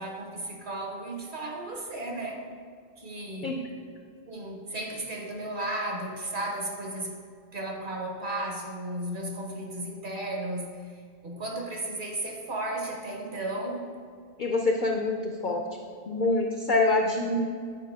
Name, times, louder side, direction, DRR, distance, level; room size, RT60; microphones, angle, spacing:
voice 1, 0.0-2.5 3.0-3.6 4.3-7.2 7.5-14.0, right 1 dB, 45° right, 1 dB, 0.9 m, -34 dB
voice 2, 14.4-15.6 16.1-17.4, left 2 dB, 65° left, 2 dB, 0.5 m, -25 dB
9.0 x 4.6 x 3.5 m, 2.2 s
omnidirectional pair, 1.4 m